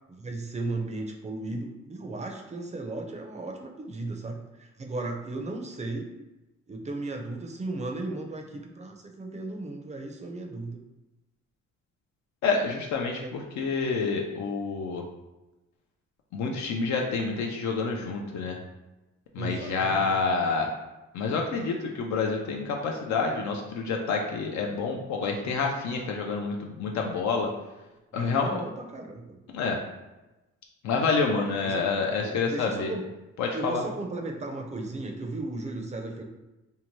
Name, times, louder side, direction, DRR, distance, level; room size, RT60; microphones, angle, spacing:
voice 1, 0.1-6.1 6.7-10.8 13.2-13.4 19.4-20.2 28.1-29.4 31.6-31.9 32.2-33.0 33.5-36.2, right 2 dB, 25° right, 3 dB, 0.4 m, -35 dB
voice 2, 12.4-15.0 16.3-18.6 19.3-20.7 21.1-27.5 28.1-28.6 29.5-29.8 30.8-32.9 33.4-33.8, left 4 dB, 70° left, 1 dB, 0.5 m, -28 dB
2.7 x 2.1 x 3.0 m, 1.0 s
cardioid pair, 90°, 30 cm